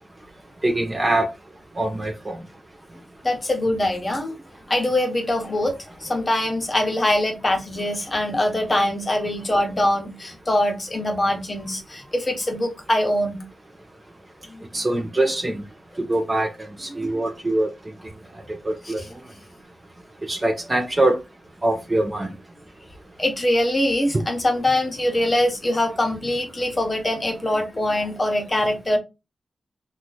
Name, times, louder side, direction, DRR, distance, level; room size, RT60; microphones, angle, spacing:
voice 1, 0.6-1.3 1.8-2.4 14.7-15.6 16.1-17.7 18.6-19.0 20.2-21.2 21.6-22.3 24.1-24.2, right 1 dB, 25° right, 0.6 m, -23 dB
voice 2, 3.2-4.4 4.7-13.4 14.5-14.6 17.0-17.1 18.9-19.0 23.2-29.0, left 1 dB, 30° left, 1.0 m, -23 dB
2.9 x 2.4 x 3.9 m
wide cardioid pair, 90°, 0 cm